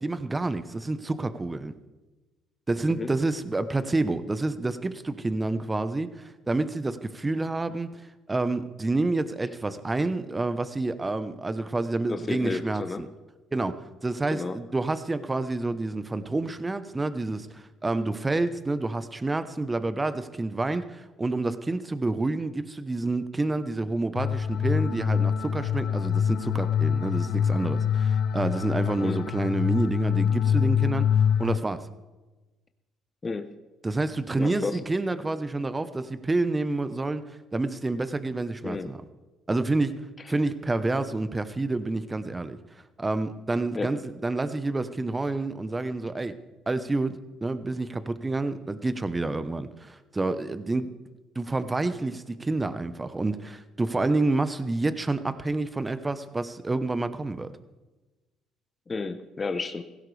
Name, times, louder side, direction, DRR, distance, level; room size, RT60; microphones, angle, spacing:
voice 1, 0.0-1.7 2.7-7.9 8.3-13.1 13.5-31.9 33.8-39.0 39.5-42.6 43.0-46.4 46.7-50.9 51.3-57.5, right 2 dB, 20° right, 12 dB, 1.1 m, -28 dB
voice 2, 12.1-13.0 14.3-14.6 29.0-29.2 33.2-33.5 34.4-34.8 38.6-38.9 43.7-44.0 58.9-59.8, left 4 dB, 30° left, 9 dB, 1.0 m, -32 dB
sound 1, 24.2-31.6, left 8 dB, 70° left, 0.6 m, -25 dB
16.5 x 16.0 x 3.5 m, 1.2 s
hypercardioid pair, 60°, 0 cm